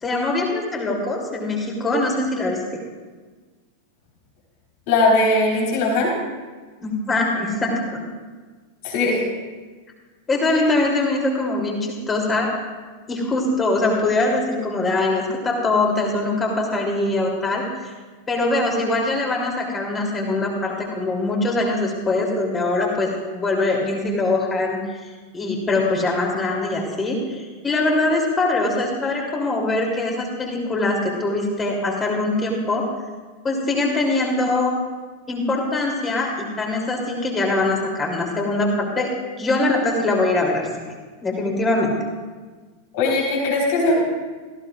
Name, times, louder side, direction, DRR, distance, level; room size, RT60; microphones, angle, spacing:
voice 1, 0.0-2.8 6.8-8.0 10.3-12.5 13.1-17.6 18.3-32.9 33.4-34.7 35.3-39.1 39.4-40.7 41.2-41.9, left 2 dB, 20° left, -1 dB, 3.1 m, -22 dB
voice 2, 4.9-6.1 8.8-9.2 42.9-43.9, left 2 dB, 50° left, -3 dB, 4.1 m, -19 dB
18.5 x 15.0 x 2.5 m, 1.4 s
figure-of-eight pair, 90°, 0 cm